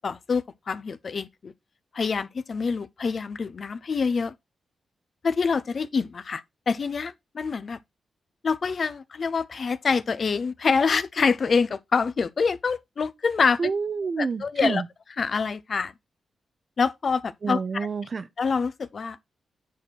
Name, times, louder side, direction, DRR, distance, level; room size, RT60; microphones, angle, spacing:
voice 1, 0.0-1.5 1.9-4.3 5.2-7.8 8.4-13.6 14.2-14.8 15.2-15.9 16.8-17.6 18.4-19.3, left 5 dB, 55° left, 0.8 m, -26 dB
voice 2, 13.6-14.9 17.4-18.3, right 5 dB, 50° right, 0.9 m, -28 dB
9.3 x 4.4 x 4.6 m
cardioid pair, 60°, 0 cm